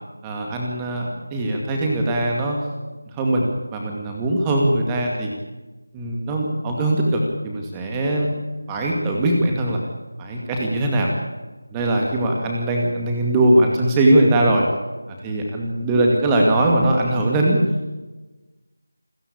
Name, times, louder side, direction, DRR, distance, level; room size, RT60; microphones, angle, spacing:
voice 1, 0.2-2.6 3.1-5.3 5.9-8.3 8.7-9.8 10.2-11.1 11.7-14.6 15.1-17.6, right 1 dB, 10° right, 0 dB, 2.3 m, -20 dB
28.0 x 14.5 x 8.6 m, 1.1 s
figure-of-eight pair, 165°, 0 cm